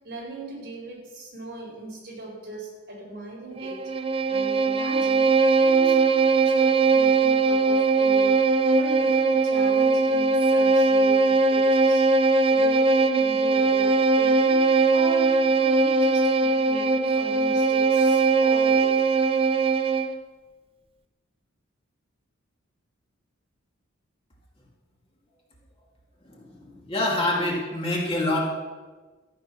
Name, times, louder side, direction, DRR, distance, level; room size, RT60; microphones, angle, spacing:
voice 1, 0.0-3.9 4.3-8.4 8.7-12.1 12.4-18.9, right 1 dB, 50° right, -2 dB, 4.1 m, -39 dB
Bowed string instrument, 3.6-20.2, right 4 dB, 25° right, 0.5 m, -20 dB
voice 2, 26.3-28.5, left 1 dB, 25° left, -3 dB, 2.2 m, -26 dB
13.5 x 8.5 x 6.0 m, 1.3 s
head